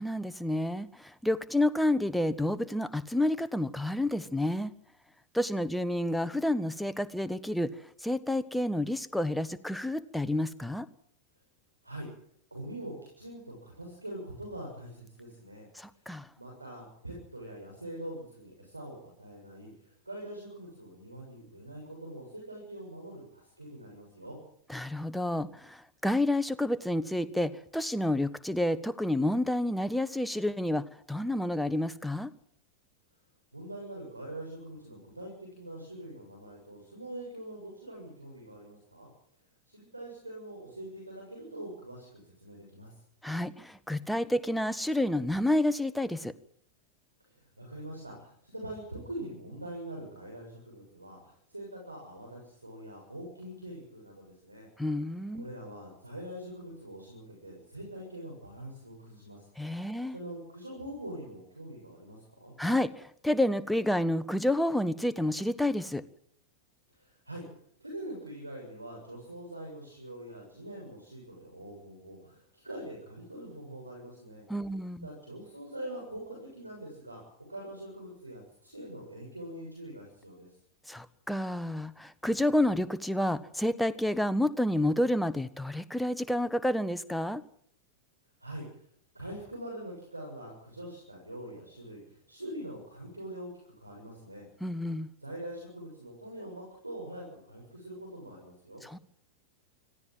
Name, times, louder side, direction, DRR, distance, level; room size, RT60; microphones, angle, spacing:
voice 1, 0.0-4.7 5.3-7.7 8.0-10.9 15.7-16.3 24.7-32.3 43.2-46.3 54.8-55.5 59.6-60.2 62.6-66.0 74.5-75.1 80.9-87.4 94.6-95.1 98.8-99.0, left 1 dB, ahead, 13 dB, 1.3 m, -29 dB
voice 2, 12.5-15.7 16.4-24.4 33.5-39.1 39.7-42.9 47.3-54.7 55.3-59.5 60.1-62.5 67.0-67.4 67.8-74.4 75.0-77.2 77.5-80.5 88.4-88.6 89.1-94.4 95.2-98.9, right 1 dB, 85° right, -1 dB, 7.1 m, -43 dB
25.5 x 16.5 x 7.7 m, 0.67 s
figure-of-eight pair, 90°, 0 cm